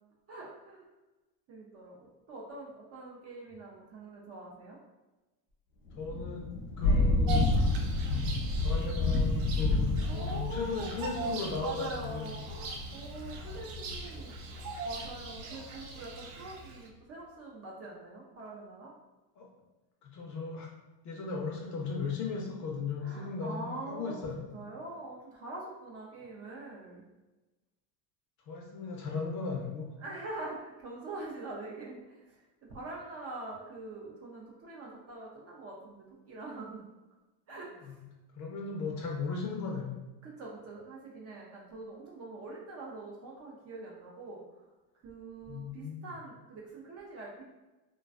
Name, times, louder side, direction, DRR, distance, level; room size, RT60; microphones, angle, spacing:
voice 1, 0.3-0.8 1.5-4.8 6.8-7.1 10.1-10.9 11.6-18.9 23.0-27.0 30.0-36.9 37.5-38.0 40.2-44.6 45.0-47.4, right 2 dB, 35° right, -3 dB, 0.4 m, -44 dB
Thunder / Rain, 5.9-15.4, left 2 dB, 75° left, 0.8 m, -30 dB
voice 2, 6.0-6.5 6.8-7.5 8.6-12.3 19.4-19.5 20.0-20.7 21.0-24.5 28.5-29.9 37.8-38.0 38.4-39.9 45.5-46.1, left 4 dB, 40° left, 0 dB, 0.5 m, -36 dB
Bird vocalization bird call bird song, 7.3-16.9, right 3 dB, 80° right, 0.6 m, -42 dB
2.4 x 2.2 x 2.3 m, 1.1 s
supercardioid pair, 110°, 48 cm